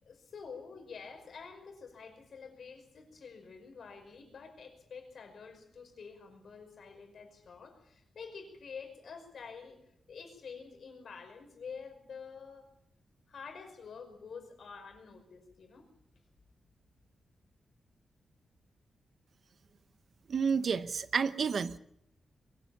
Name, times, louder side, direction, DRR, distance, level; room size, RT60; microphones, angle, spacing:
voice 1, 0.0-9.8 10.1-12.7 13.3-15.9, left 5 dB, 60° left, 5 dB, 5.4 m, -48 dB
voice 2, 20.3-21.8, right 6 dB, 50° right, 13 dB, 0.9 m, -30 dB
22.5 x 15.0 x 8.5 m, 0.75 s
wide cardioid pair, 150°, 0 cm